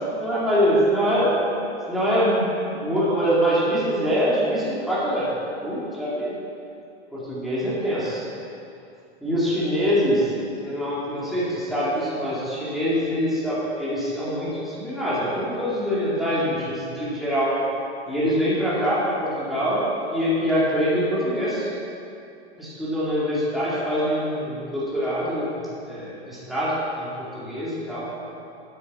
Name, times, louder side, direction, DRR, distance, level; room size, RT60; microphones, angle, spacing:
voice 1, 0.1-1.3 1.9-2.5 2.7-5.3 5.6-6.3 7.1-8.2 9.2-10.3 10.6-17.5 18.1-19.8 20.1-21.7 22.6-25.5 25.9-28.1, equal, ahead, -10 dB, 2.5 m, -24 dB
8.8 x 7.4 x 6.2 m, 2.6 s
hypercardioid pair, 135°, 34 cm